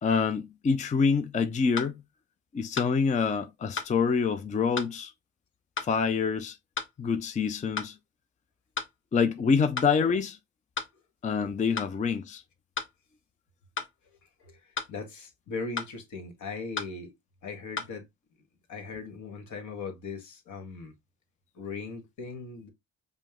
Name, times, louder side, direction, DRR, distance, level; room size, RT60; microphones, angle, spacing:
voice 1, 0.0-2.0 2.5-5.1 5.8-6.6 7.0-8.0 9.1-10.4 11.2-12.4, left 5 dB, 25° left, 0.4 m, -26 dB
sound 1, 1.8-1.9 2.8-2.9 3.8-3.9 4.8-4.9 5.8-5.9 6.8-6.9 7.8-7.9 8.8-8.9 9.8-9.9 10.8-10.9 11.8-11.9 12.8-12.9 13.8-13.9 14.8-14.9 15.8-15.9 16.8-16.9 17.8-17.9, left 5 dB, 40° left, 1.1 m, -34 dB
voice 2, 14.9-17.1 17.4-18.1 18.7-20.9 21.5-22.7, left 4 dB, 70° left, 1.5 m, -39 dB
5.2 x 2.0 x 3.5 m
cardioid pair, 90°, 30 cm